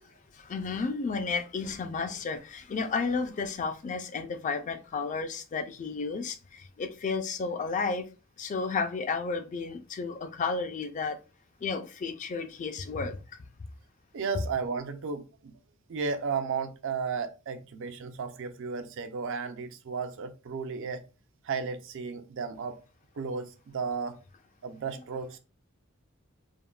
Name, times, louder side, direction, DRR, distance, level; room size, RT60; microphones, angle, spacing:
voice 1, 0.4-8.1 8.4-11.2 11.6-13.2, left 4 dB, 35° left, 0.3 m, -32 dB
voice 2, 14.1-15.5 15.9-21.0 21.4-22.8 23.2-24.2 24.6-25.4, right 5 dB, 65° right, 0.4 m, -34 dB
3.5 x 2.1 x 2.3 m
head